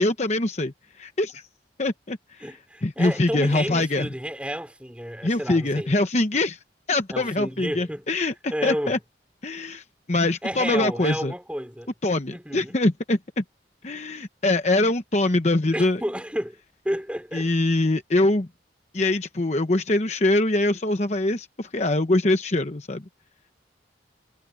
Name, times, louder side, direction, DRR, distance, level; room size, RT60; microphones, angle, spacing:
voice 1, 0.0-1.4 1.8-2.4 2.8-4.1 5.2-6.6 6.9-8.3 8.6-9.0 9.4-11.3 12.0-13.4 13.8-16.0 17.3-18.5 18.9-23.0, left 2 dB, 40° left, 1.0 m, -23 dB
voice 2, 2.4-5.9 7.1-8.0 8.5-9.0 10.4-11.9 12.3-12.8 15.7-16.6 16.8-17.5, equal, 5° right, 4.1 m, -31 dB
head